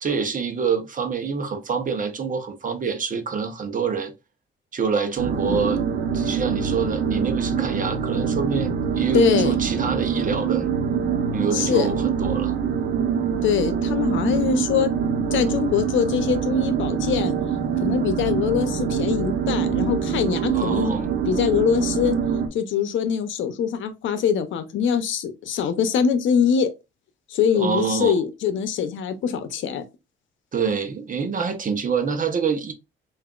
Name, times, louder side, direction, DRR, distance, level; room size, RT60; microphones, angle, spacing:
voice 1, 0.0-4.1 4.7-5.8 6.1-10.6 11.3-12.5 20.5-21.1 27.5-28.2 30.5-32.7, right 5 dB, 40° right, 1.0 m, -26 dB
sound 1, 5.2-22.5, right 7 dB, 75° right, 1.1 m, -24 dB
voice 2, 9.1-9.6 11.5-11.9 13.4-14.9 15.3-17.3 17.8-20.9 21.3-22.2 22.5-26.7 27.3-29.8, left 7 dB, 75° left, 0.8 m, -23 dB
5.6 x 2.6 x 2.4 m
cardioid pair, 90°, 20 cm